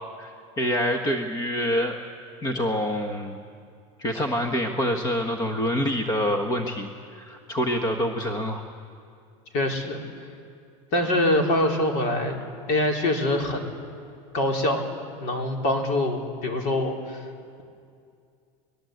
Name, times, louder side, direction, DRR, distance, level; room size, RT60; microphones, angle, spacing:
voice 1, 0.2-2.0 2.4-3.4 4.0-8.6, equal, 20° left, 4 dB, 1.4 m, -26 dB
voice 2, 9.5-10.0 10.9-12.4 12.7-13.8 14.3-14.8 15.2-17.2, left 1 dB, 50° left, 1 dB, 4.1 m, -24 dB
23.0 x 20.5 x 8.0 m, 2.4 s
supercardioid pair, 145°, 17 cm